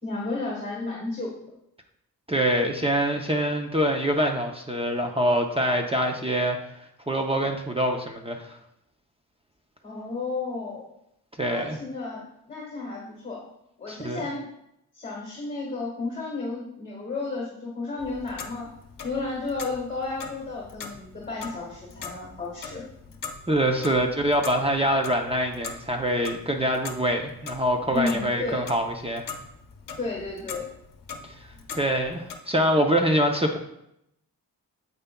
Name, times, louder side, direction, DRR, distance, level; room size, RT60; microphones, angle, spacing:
voice 1, 0.0-1.3 9.8-10.9 11.4-13.4 13.8-14.5 14.9-18.7 19.0-22.9 27.9-28.6 30.0-30.6, left 3 dB, 20° left, -3 dB, 1.6 m, -32 dB
voice 2, 2.3-6.6 7.1-8.5 11.4-11.8 13.9-14.2 23.5-29.2 31.3-31.4 31.8-33.6, equal, 15° right, 2 dB, 0.6 m, -24 dB
Clock, 18.0-32.4, left 5 dB, 60° left, 0.8 m, -42 dB
9.0 x 8.1 x 2.2 m, 0.80 s
wide cardioid pair, 175°, 38 cm